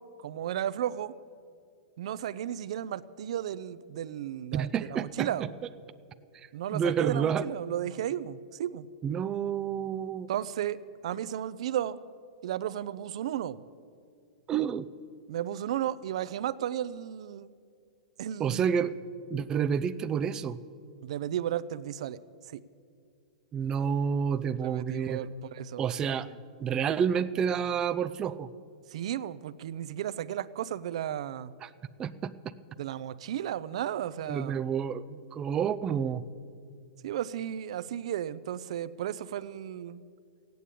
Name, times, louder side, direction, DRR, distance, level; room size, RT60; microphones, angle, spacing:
voice 1, 0.2-1.1 2.0-5.5 6.5-8.9 10.3-10.8 11.0-12.0 12.4-13.6 15.3-17.5 18.2-18.7 21.0-22.2 22.5-22.6 24.6-25.8 28.9-31.5 32.8-34.6 37.0-40.0, right 11 dB, 60° right, 16 dB, 0.6 m, -34 dB
voice 2, 4.5-5.5 6.7-7.5 9.0-10.3 14.5-14.9 18.4-18.9 19.3-20.6 23.5-25.3 25.8-26.3 26.6-28.5 31.6-31.7 32.0-32.3 34.3-36.2, right 7 dB, 15° right, 14 dB, 0.4 m, -29 dB
16.0 x 9.3 x 8.5 m, 2.4 s
hypercardioid pair, 160°, 4 cm